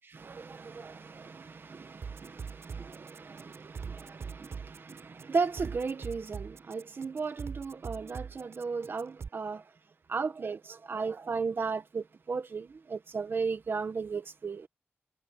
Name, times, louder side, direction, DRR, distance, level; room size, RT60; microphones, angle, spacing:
voice 1, 0.1-9.6 10.1-14.7, right 4 dB, 55° right, 1.5 m, -35 dB
sound 1, 2.0-9.3, right 6 dB, 90° right, 7.4 m, -41 dB
wide cardioid pair, 140°, 4 cm